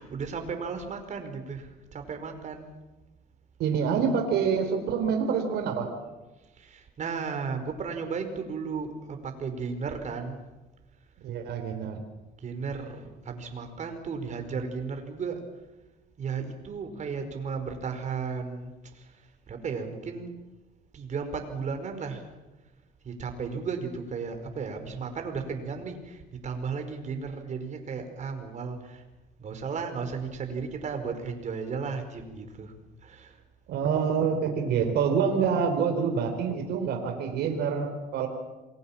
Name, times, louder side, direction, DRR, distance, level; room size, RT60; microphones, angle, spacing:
voice 1, 0.0-2.7 6.6-10.4 12.4-15.4 16.2-19.1 19.5-20.3 20.9-22.2 23.0-29.0 29.4-32.7 33.0-33.4, right 5 dB, 45° right, 6 dB, 5.0 m, -34 dB
voice 2, 3.6-5.9 11.2-12.0 33.7-38.3, right 6 dB, 75° right, 4 dB, 4.0 m, -26 dB
28.0 x 22.5 x 7.4 m, 1.1 s
cardioid pair, 110°, 17 cm